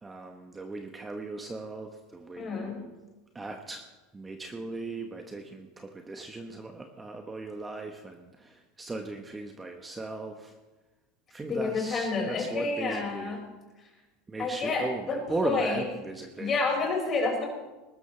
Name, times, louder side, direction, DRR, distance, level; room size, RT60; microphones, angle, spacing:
voice 1, 0.0-3.0 3.3-3.8 4.1-10.5 11.3-13.3 14.3-16.5, right 2 dB, 15° right, 4 dB, 1.1 m, -37 dB
voice 2, 2.4-2.8 11.5-13.5 14.4-15.8 16.4-17.4, left 3 dB, 30° left, -1 dB, 5.4 m, -29 dB
20.5 x 12.5 x 3.3 m, 1.2 s
supercardioid pair, 110°, 0 cm